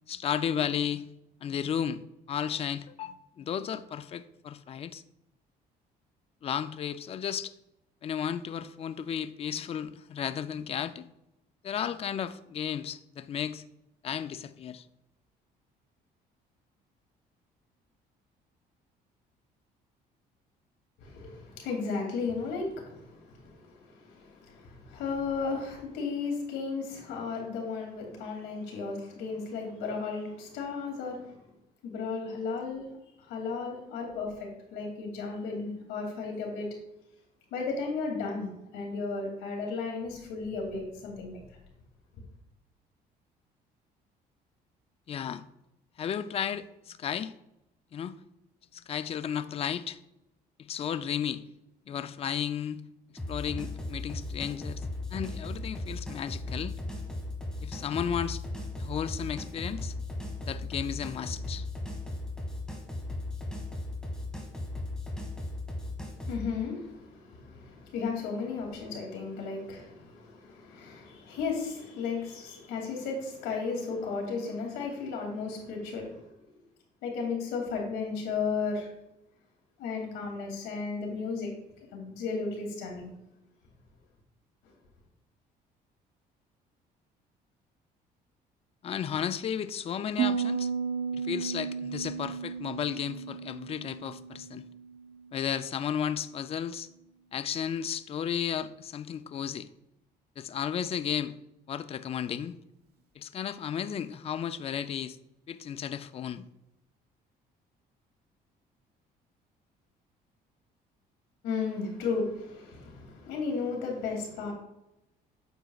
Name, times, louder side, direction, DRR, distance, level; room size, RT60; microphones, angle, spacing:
voice 1, 0.1-1.0 1.4-2.0 2.3-5.0 6.4-7.5 8.0-11.1 11.6-13.6 14.0-14.9 45.1-45.4 46.0-47.3 47.9-48.2 48.7-50.0 50.6-51.4 51.9-52.9 53.3-54.8 55.1-56.8 57.6-58.4 58.8-60.0 60.4-61.7 88.8-90.7 91.1-94.6 95.3-96.9 97.3-99.7 100.4-101.4 101.7-102.5 103.2-105.2 105.5-106.5, left 8 dB, 35° left, 0.4 m, -33 dB
voice 2, 21.0-31.3 31.8-32.9 33.2-36.7 37.5-41.4 66.3-76.3 77.0-78.9 79.8-81.5 81.9-83.1 111.4-114.5, left 4 dB, 90° left, 2.5 m, -34 dB
sound 1, 53.2-66.4, left 2 dB, 5° left, 1.6 m, -37 dB
Piano, 90.2-95.8, right 6 dB, 75° right, 1.1 m, -34 dB
9.2 x 7.0 x 2.4 m
cardioid pair, 110°, 17 cm